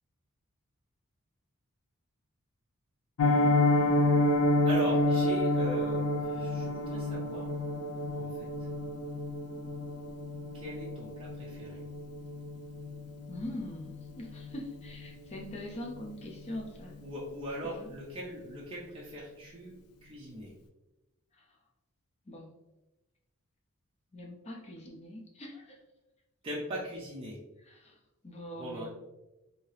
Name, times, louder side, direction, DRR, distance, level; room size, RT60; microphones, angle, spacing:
Piano, 3.2-14.1 14.4-14.6 14.9-15.0 15.4-15.6 16.0-16.1, left 1 dB, 90° left, 0.4 m, -29 dB
voice 1, 4.7-7.5 8.1-8.5 10.5-11.8 17.0-19.7 20.0-20.5 26.4-27.4 28.6-28.9, equal, 25° right, -5 dB, 0.5 m, -40 dB
voice 2, 13.3-17.0 17.6-17.9 22.3-22.5 24.1-25.7 27.7-28.0 28.2-28.9, left 1 dB, 30° left, 0 dB, 0.5 m, -42 dB
2.8 x 2.7 x 3.1 m, 1.0 s
head